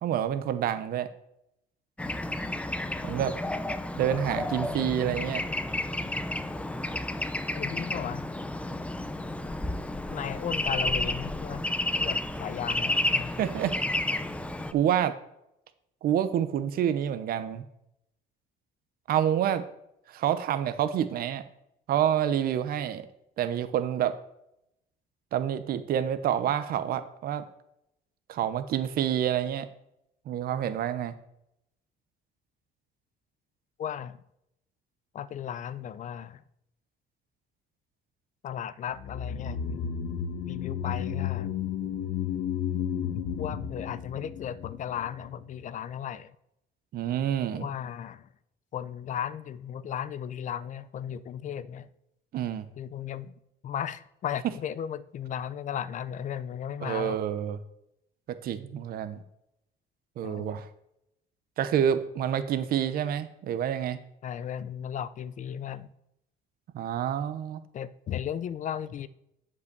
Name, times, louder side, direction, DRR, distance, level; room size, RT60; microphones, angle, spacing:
voice 1, 0.0-1.1 3.0-3.4 4.0-5.5 13.3-13.8 14.7-15.2 16.0-17.6 19.1-19.6 20.1-21.4 21.9-23.1 23.4-24.2 25.3-27.4 28.3-29.7 30.3-31.1 46.9-47.6 52.3-52.7 56.8-57.6 58.3-59.2 60.2-60.7 61.6-64.0 66.7-67.6, right 10 dB, 60° right, 0.8 m, -28 dB
Bird / Traffic noise roadway noise, 2.0-14.7, left 1 dB, 5° left, 0.6 m, -31 dB
voice 2, 7.5-8.3 10.1-11.6 12.0-13.3 33.8-34.2 35.1-36.4 38.4-40.0 40.5-41.5 43.4-46.4 47.5-48.3 48.7-51.9 52.8-53.3 53.6-57.2 60.2-60.6 64.2-65.9 67.7-69.1, left 9 dB, 45° left, 0.6 m, -35 dB
sound 1, 38.9-45.4 45.6-45.7, left 8 dB, 80° left, 1.2 m, -33 dB
8.1 x 5.5 x 6.7 m
cardioid pair, 110°, 17 cm